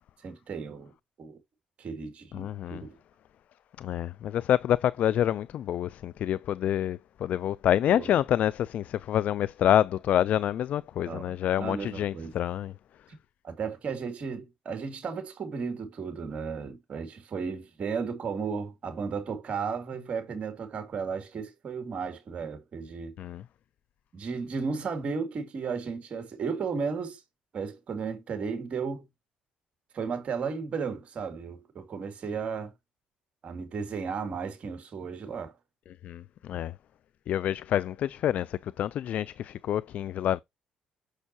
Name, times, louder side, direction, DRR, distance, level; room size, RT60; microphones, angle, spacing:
voice 1, 0.2-0.9 1.2-1.4 1.8-3.0 7.9-8.2 11.0-12.3 13.4-23.2 24.1-27.2 27.5-29.0 29.9-32.7 33.4-35.6, right 5 dB, 50° right, 2.4 m, -34 dB
voice 2, 2.3-2.8 3.8-12.7 23.2-23.4 36.0-36.7 37.3-40.4, left 11 dB, 60° left, 0.3 m, -27 dB
6.5 x 6.3 x 2.7 m
cardioid pair, 95°, 3 cm